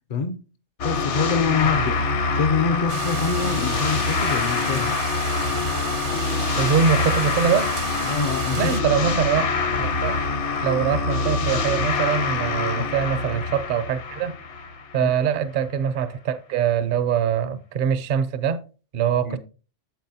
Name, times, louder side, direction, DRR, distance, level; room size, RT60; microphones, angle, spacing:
sound 1, 0.8-15.1, left 4 dB, 70° left, 1.2 m, -25 dB
voice 1, 0.8-4.9 8.1-8.9 12.7-12.9 15.0-15.1 19.3-19.4, left 5 dB, 55° left, 0.5 m, -25 dB
sound 2, 2.9-8.8, right 6 dB, 70° right, 1.2 m, -34 dB
voice 2, 6.6-7.7 8.6-9.5 9.8-10.2 10.6-14.3 14.9-18.6 18.9-19.4, right 7 dB, 50° right, 0.7 m, -23 dB
9.2 x 7.2 x 2.7 m
omnidirectional pair, 1.2 m